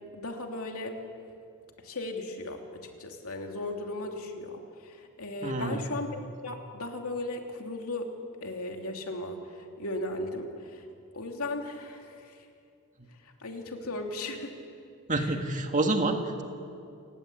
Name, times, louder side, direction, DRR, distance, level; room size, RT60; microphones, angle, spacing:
voice 1, 0.1-1.0 1.8-4.6 5.2-8.1 8.4-9.4 9.8-10.8 11.1-12.1 13.4-14.5 15.2-15.3, left 2 dB, 70° left, 3 dB, 2.9 m, -36 dB
voice 2, 5.4-5.9 15.1-16.4, right 2 dB, 35° right, 4 dB, 1.9 m, -28 dB
29.0 x 17.5 x 8.7 m, 2.5 s
head